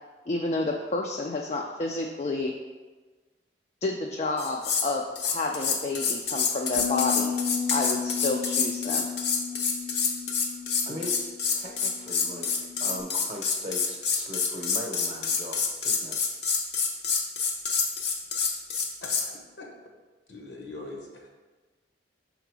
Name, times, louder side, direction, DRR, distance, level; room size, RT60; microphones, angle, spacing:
voice 1, 0.3-2.5 3.8-7.4 7.7-9.1, left 2 dB, 35° left, 1 dB, 0.3 m, -30 dB
sound 1, 4.4-4.9 5.2-19.3, left 5 dB, 65° left, 0.7 m, -27 dB
sound 2, 6.8-13.0, left 7 dB, 90° right, 0.5 m, -34 dB
voice 2, 10.8-16.2, equal, 35° right, 1 dB, 0.7 m, -39 dB
voice 3, 20.3-21.4, left 2 dB, 80° left, 0 dB, 1.3 m, -41 dB
5.8 x 3.8 x 4.7 m, 1.3 s
head